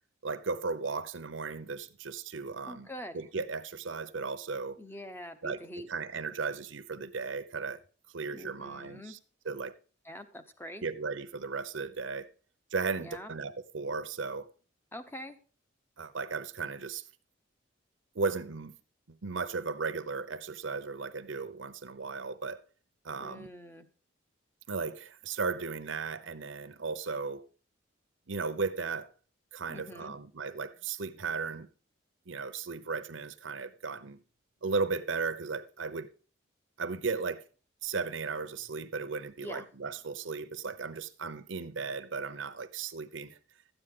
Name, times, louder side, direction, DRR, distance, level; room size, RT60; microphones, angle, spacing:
voice 1, 0.2-2.9 3.1-4.8 5.4-7.8 8.1-9.2 9.4-9.7 10.8-12.3 12.7-14.5 16.0-17.1 18.1-18.8 19.1-22.6 23.0-23.5 24.7-27.5 28.3-29.1 29.5-31.7 32.3-34.2 34.6-36.1 36.8-37.4 37.8-43.4, right 4 dB, 80° right, 0.8 m, -36 dB
voice 2, 2.7-3.2 4.8-5.9 8.3-9.2 10.0-10.8 13.0-13.3 14.9-15.4 23.2-23.9 29.7-30.1 39.4-39.7, equal, 10° left, 0.9 m, -44 dB
13.0 x 9.0 x 3.8 m
head